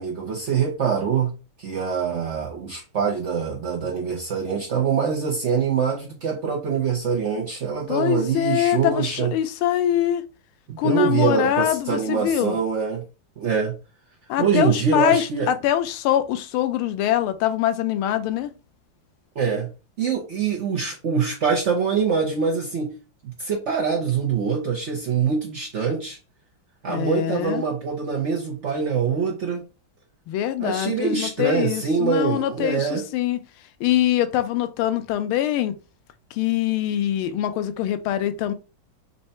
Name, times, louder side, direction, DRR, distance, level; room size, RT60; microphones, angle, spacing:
voice 1, 0.0-1.3 1.6-9.3 10.7-13.0 13.4-13.7 14.4-15.5 19.4-19.7 20.0-23.0 23.4-26.2 26.8-29.6 30.6-33.1, right 6 dB, 75° right, 0.6 m, -24 dB
voice 2, 7.9-10.2 10.8-12.6 14.3-18.5 26.9-27.6 30.3-33.4 33.8-35.7 36.3-38.5, left 12 dB, 80° left, 1.5 m, -23 dB
4.3 x 2.7 x 4.2 m
omnidirectional pair, 2.4 m